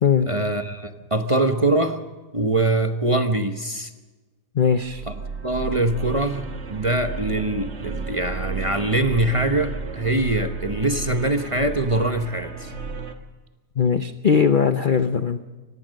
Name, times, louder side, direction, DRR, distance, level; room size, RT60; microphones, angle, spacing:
voice 1, 0.3-2.0 2.3-3.9 5.1-5.2 5.4-12.7, right 2 dB, 25° right, 6 dB, 0.9 m, -23 dB
voice 2, 4.5-5.0 13.8-15.4, left 6 dB, 50° left, 10 dB, 0.6 m, -20 dB
sound 1, 4.8-13.2, right 4 dB, 40° right, 1.7 m, -33 dB
24.5 x 19.0 x 6.5 m, 1.3 s
omnidirectional pair, 1.8 m